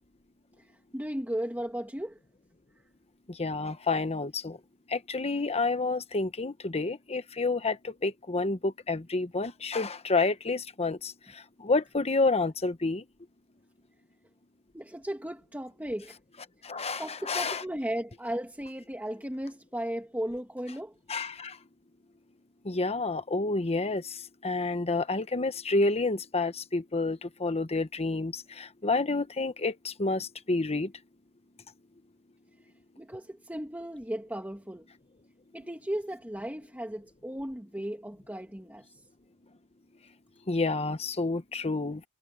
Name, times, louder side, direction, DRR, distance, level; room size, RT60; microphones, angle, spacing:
voice 1, 0.6-2.2 14.7-16.2 17.0-20.9 33.0-34.9 35.5-39.0, right 1 dB, 10° right, 2.5 m, -36 dB
voice 2, 3.3-4.6 4.9-13.0 16.6-17.6 21.1-21.6 22.6-30.9 40.5-42.0, left 3 dB, 30° left, 1.1 m, -29 dB
head